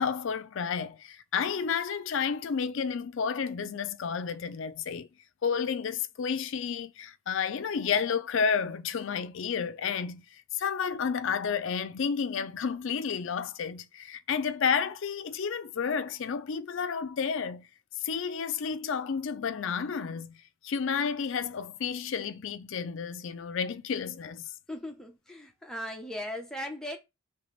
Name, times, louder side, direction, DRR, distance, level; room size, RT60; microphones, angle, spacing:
voice 1, 0.0-5.1 5.4-17.7 18.0-24.5, left 6 dB, 60° left, 0.4 m, -31 dB
voice 2, 24.7-27.0, left 1 dB, 5° left, 0.6 m, -38 dB
4.2 x 3.3 x 3.1 m
head